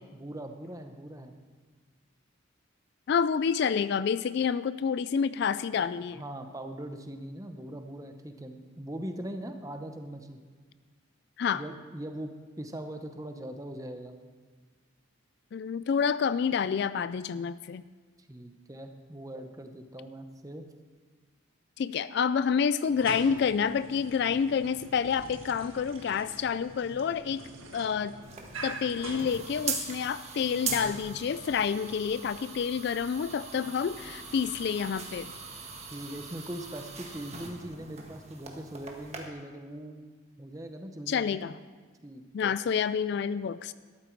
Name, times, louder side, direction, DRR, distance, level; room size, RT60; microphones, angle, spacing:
voice 1, 0.0-1.3 6.1-10.4 11.5-14.1 18.3-20.6 35.9-40.0 40.4-41.5 42.0-42.6, right 1 dB, 15° right, 6 dB, 0.8 m, -41 dB
voice 2, 3.1-6.2 11.4-11.6 15.5-17.8 21.8-27.4 27.7-28.1 28.6-35.3 41.1-41.6 42.3-43.7, left 6 dB, 55° left, 16 dB, 0.3 m, -28 dB
sound 1, 22.8-30.0, right 2 dB, 80° right, 1.7 m, -45 dB
sound 2, 28.2-39.2, right 5 dB, 30° right, 1.5 m, -40 dB
13.0 x 12.0 x 4.6 m, 1.5 s
head